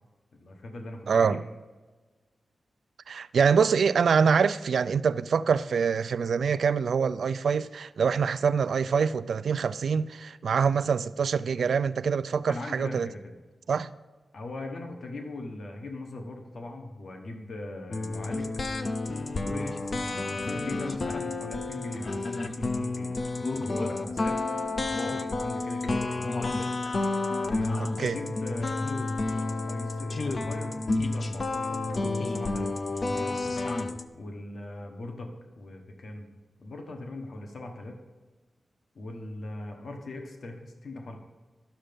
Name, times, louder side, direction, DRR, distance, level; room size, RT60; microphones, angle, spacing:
voice 1, 0.3-1.4 12.5-13.3 14.3-18.6 19.4-23.2 23.5-24.5 25.0-26.5 27.4-33.4 34.1-36.3 36.6-38.0 38.9-41.2, left 2 dB, 60° left, 1.2 m, -40 dB
voice 2, 1.1-1.4 3.1-13.1 13.7-13.9 28.0-28.1, right 6 dB, 85° right, 0.3 m, -25 dB
sound 1, 17.9-34.1, left 3 dB, 40° left, 0.5 m, -30 dB
11.5 x 6.6 x 5.2 m
wide cardioid pair, 170°, 0 cm